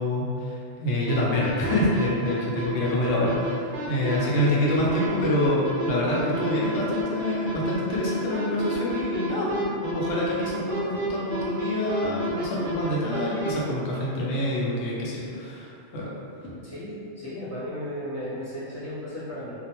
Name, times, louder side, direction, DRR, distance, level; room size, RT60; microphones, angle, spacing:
voice 1, 0.0-16.1 16.4-16.6, left 1 dB, 70° left, -5 dB, 0.9 m, -26 dB
sound 1, 1.1-13.5, right 1 dB, 65° right, 0.5 m, -31 dB
voice 2, 4.1-4.7 16.6-19.5, equal, 25° left, -11 dB, 0.3 m, -35 dB
2.4 x 2.1 x 2.9 m, 2.5 s
omnidirectional pair, 1.3 m